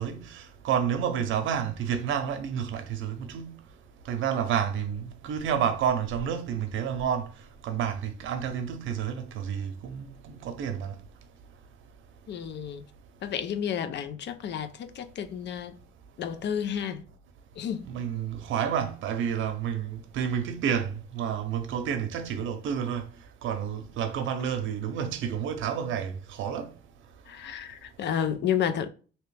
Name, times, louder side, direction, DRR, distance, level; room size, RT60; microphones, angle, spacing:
voice 1, 0.0-3.5 4.1-7.3 7.6-11.0 17.9-23.1 23.4-26.7, right 8 dB, 80° right, 0.6 m, -30 dB
voice 2, 12.3-12.8 13.2-15.8 16.2-17.0 17.6-17.9 27.3-28.9, left 8 dB, 60° left, 0.5 m, -31 dB
3.0 x 2.8 x 3.2 m
cardioid pair, 90°, 20 cm